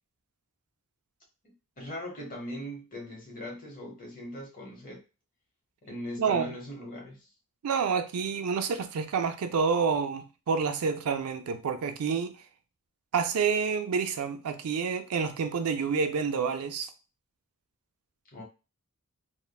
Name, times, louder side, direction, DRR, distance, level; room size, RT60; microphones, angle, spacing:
voice 1, 1.4-5.0 5.8-7.3 18.3-18.4, equal, 40° left, 1.0 m, -40 dB
voice 2, 7.6-12.4 13.1-16.9, right 5 dB, 85° right, 0.4 m, -28 dB
3.2 x 2.1 x 2.2 m
head